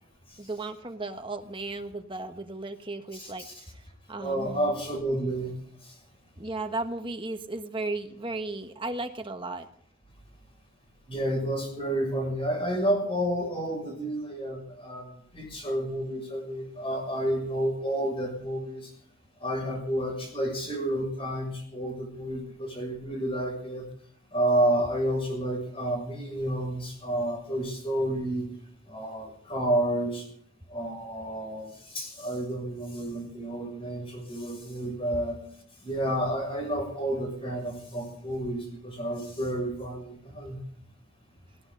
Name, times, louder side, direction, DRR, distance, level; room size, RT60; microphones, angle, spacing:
voice 1, 0.4-3.8 4.1-4.7 6.4-9.7, right 2 dB, 25° right, 6 dB, 1.4 m, -35 dB
voice 2, 3.1-3.5 4.2-6.0 11.1-18.9 19.4-23.9 24.3-28.5 28.9-30.3 30.7-35.4 35.8-40.6, right 1 dB, 25° left, 3 dB, 6.3 m, -30 dB
18.5 x 17.5 x 4.0 m, 0.66 s
head